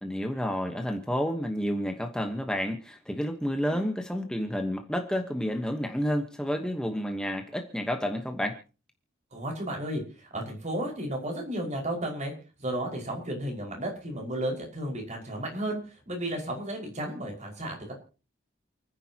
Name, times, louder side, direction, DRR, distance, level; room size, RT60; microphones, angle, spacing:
voice 1, 0.0-8.6, equal, 5° left, 4 dB, 1.2 m, -30 dB
voice 2, 9.3-12.3 12.6-17.9, right 1 dB, 40° right, 1 dB, 5.5 m, -33 dB
29.0 x 10.0 x 2.9 m, 0.34 s
head